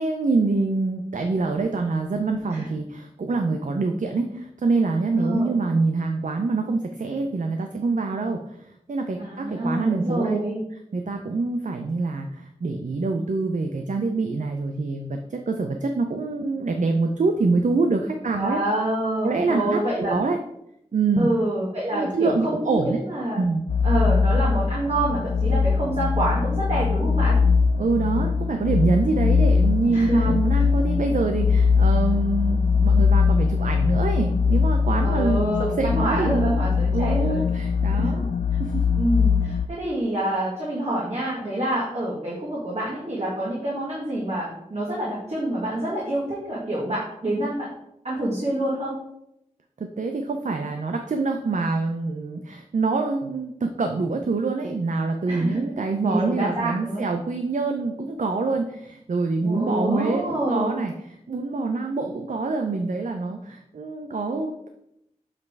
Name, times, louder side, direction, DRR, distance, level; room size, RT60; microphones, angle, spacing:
voice 1, 0.0-10.4 10.9-18.6 19.2-20.4 20.9-21.3 21.9-23.0 23.4-23.6 27.8-36.6 36.9-38.3 38.6-38.8 49.8-60.9 61.3-64.7, right 3 dB, 75° right, 4 dB, 0.5 m, -25 dB
voice 2, 5.2-5.5 9.2-10.6 18.3-20.2 21.2-23.4 23.8-27.4 29.9-30.6 35.0-37.4 37.9-38.1 39.0-47.7 48.0-48.9 55.3-55.6 56.0-57.0 59.4-60.7, right 1 dB, 60° right, -6 dB, 1.8 m, -27 dB
sound 1, 23.7-39.7, left 5 dB, 65° left, 0.4 m, -21 dB
7.4 x 3.2 x 4.6 m, 0.79 s
wide cardioid pair, 55°, 13 cm